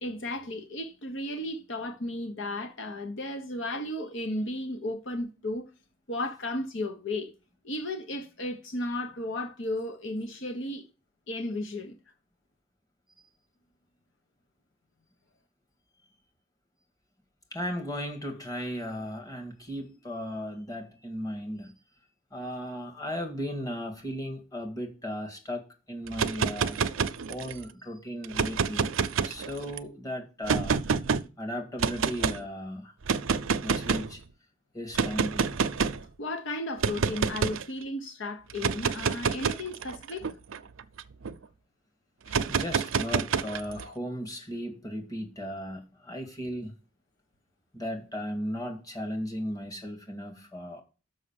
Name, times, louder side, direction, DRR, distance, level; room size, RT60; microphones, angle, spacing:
voice 1, 0.0-5.7 6.1-7.3 7.6-10.8 11.3-12.0 36.2-40.3 42.3-42.4 43.8-44.0, left 1 dB, 60° left, 1.0 m, -34 dB
voice 2, 17.5-21.8 22.3-26.8 27.3-29.0 29.2-30.8 31.4-32.9 33.6-34.2 34.7-35.5 42.5-46.7 47.7-50.8, equal, 15° left, 1.8 m, -36 dB
sound 1, 26.1-27.6 28.2-29.8 30.5-31.2 31.8-32.4 33.0-34.1 35.0-36.0 36.8-37.6 38.5-41.3 42.3-43.8, right 5 dB, 70° right, 0.6 m, -28 dB
6.4 x 5.6 x 7.0 m
head